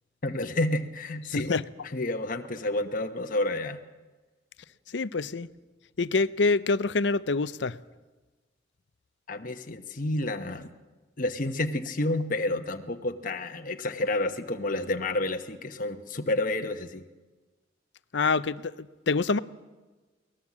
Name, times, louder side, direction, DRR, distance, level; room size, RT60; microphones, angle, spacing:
voice 1, 0.2-1.6 1.9-3.8 9.3-10.7 11.2-17.1, left 2 dB, 45° left, 1.1 m, -30 dB
voice 2, 1.3-1.6 4.9-5.5 6.0-7.8 18.1-19.4, left 3 dB, 65° left, 0.6 m, -26 dB
23.0 x 19.0 x 7.4 m
head